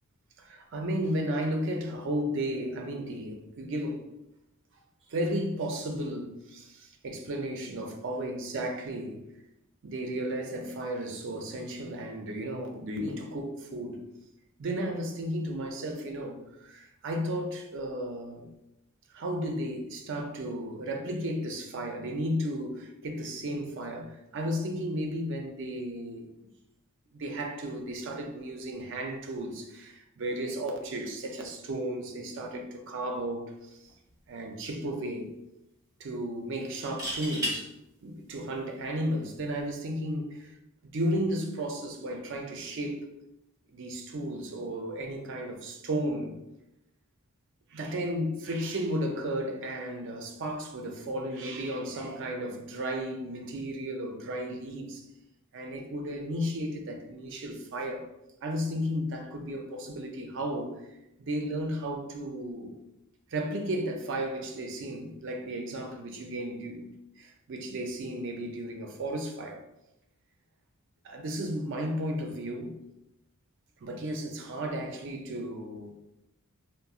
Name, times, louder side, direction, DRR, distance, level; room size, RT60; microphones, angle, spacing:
voice 1, 0.4-4.1 5.1-9.2 9.8-14.0 14.6-18.5 19.1-26.3 27.1-33.8 34.3-35.3 36.0-37.7 38.0-40.5 40.9-43.1 43.7-46.3 47.7-55.0 55.5-58.1 58.4-60.9 61.2-62.7 63.3-69.6 71.0-72.8 73.8-76.0, right 1 dB, 55° right, 0.4 m, -34 dB
sound 1, 33.9-34.1 34.5-34.6 36.7-37.6 39.4-39.6, equal, 15° right, 0.9 m, -33 dB
3.8 x 2.0 x 2.3 m
head